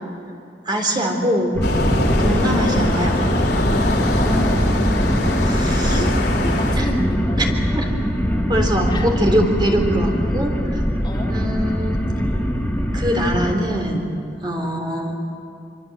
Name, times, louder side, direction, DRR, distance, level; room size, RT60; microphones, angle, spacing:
voice 1, 0.7-1.6 2.2-3.2 5.4-6.1 6.7-6.9 7.4-7.9 8.5-10.8 11.3-12.0 12.9-14.1 14.4-15.2, equal, 25° right, 2 dB, 3.6 m, -22 dB
sound 1, 1.5-13.5, equal, 10° left, 2.3 m, -22 dB
sound 2, 1.6-6.8, left 1 dB, 75° left, 3.5 m, -23 dB
voice 2, 4.1-4.6 5.8-7.5 8.9-9.1 11.0-11.4 14.6-14.8, equal, 25° left, -3 dB, 3.3 m, -29 dB
26.0 x 25.5 x 8.1 m, 2.6 s
head